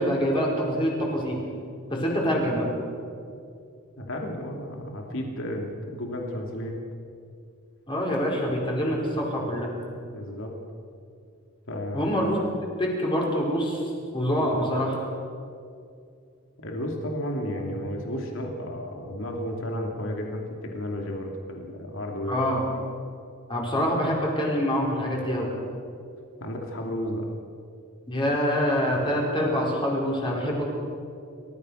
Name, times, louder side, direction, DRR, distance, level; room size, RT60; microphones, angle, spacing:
voice 1, 0.0-1.4 1.9-2.7 7.9-9.7 11.9-12.4 12.8-13.8 14.1-15.0 22.3-22.6 23.5-25.5 28.1-30.6, equal, 25° left, -2 dB, 5.1 m, -25 dB
voice 2, 4.0-6.8 10.1-10.5 11.7-12.1 16.6-22.5 26.4-27.3, equal, 60° left, 1 dB, 2.9 m, -32 dB
30.0 x 14.5 x 6.5 m, 2.4 s
head